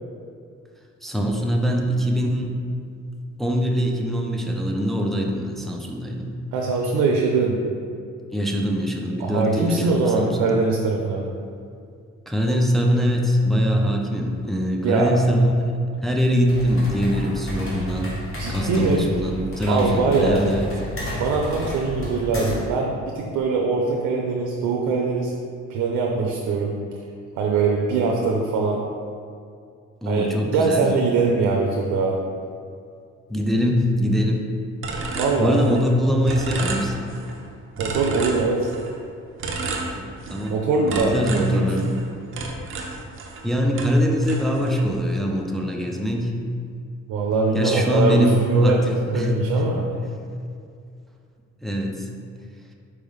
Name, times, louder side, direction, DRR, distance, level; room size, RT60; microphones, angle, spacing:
voice 1, 1.0-2.7 3.4-6.4 8.3-10.6 12.3-15.5 16.0-18.2 18.5-20.7 30.0-30.9 33.3-34.4 35.4-37.1 39.9-40.6 40.9-42.0 43.4-46.4 47.5-49.8 51.6-52.1, equal, ahead, 0 dB, 0.4 m, -23 dB
voice 2, 6.5-7.6 9.2-11.2 14.8-15.1 18.4-19.1 19.7-20.4 21.1-25.4 25.7-26.8 27.4-28.8 30.1-32.2 35.1-35.6 37.8-38.7 40.5-41.9 47.1-49.9, right 4 dB, 90° right, 0 dB, 0.5 m, -22 dB
sound 1, 16.4-22.7, left 1 dB, 45° left, 1.4 m, -31 dB
sound 2, 34.8-36.0 36.3-37.4 37.8-38.9 39.4-40.5 40.9-43.5 43.7-44.9, right 3 dB, 45° right, 0.6 m, -31 dB
4.5 x 3.3 x 3.6 m, 2.4 s
cardioid pair, 90°, 30 cm